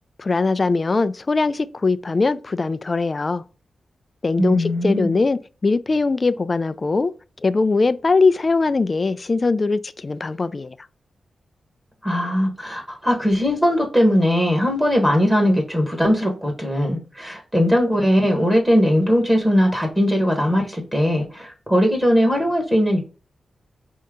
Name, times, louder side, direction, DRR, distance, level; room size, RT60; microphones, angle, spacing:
voice 1, 0.2-3.4 4.2-7.1 7.4-10.8, left 3 dB, 35° left, 0.3 m, -21 dB
voice 2, 4.4-5.1 12.0-23.0, equal, 15° right, 1.3 m, -19 dB
5.3 x 2.8 x 3.6 m
wide cardioid pair, 120°, 0 cm